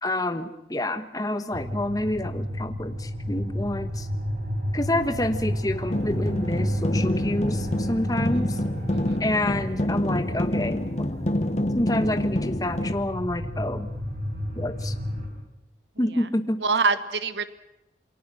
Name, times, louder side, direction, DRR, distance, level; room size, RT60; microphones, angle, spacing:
voice 1, 0.0-4.1 4.7-8.6 9.2-11.4 11.7-13.9 14.6-14.9 16.0-16.6, left 1 dB, 20° left, 9 dB, 1.1 m, -28 dB
sound 1, 1.5-15.3, equal, 45° right, 6.0 m, -32 dB
sound 2, 5.9-12.9, left 1 dB, 40° left, 1.0 m, -27 dB
voice 2, 8.3-8.6 8.9-9.2 16.1-16.3 16.6-17.4, right 4 dB, 85° right, 12 dB, 1.3 m, -26 dB
28.0 x 23.0 x 6.3 m, 0.86 s
head